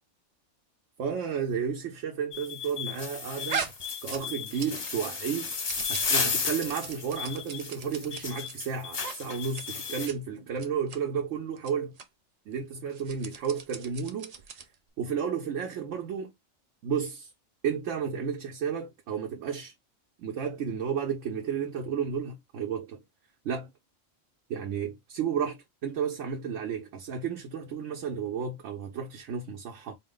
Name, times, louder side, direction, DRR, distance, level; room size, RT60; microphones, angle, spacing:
voice 1, 1.0-3.7 4.0-5.5 5.9-12.0 12.5-14.3 15.0-16.3 16.8-17.3 17.6-19.7 20.2-23.0 23.4-23.7 24.5-29.9, right 7 dB, 75° right, 1.0 m, -32 dB
sound 1, 2.3-10.1, left 5 dB, 40° left, 0.6 m, -33 dB
sound 2, 3.5-5.0 5.2-8.5 9.0-9.2 9.4-9.6 9.9-10.2 10.6-11.0 11.6-11.7 12.0-12.1 12.9-14.7, right 6 dB, 55° right, 0.4 m, -39 dB
4.2 x 2.2 x 3.6 m
omnidirectional pair, 1.3 m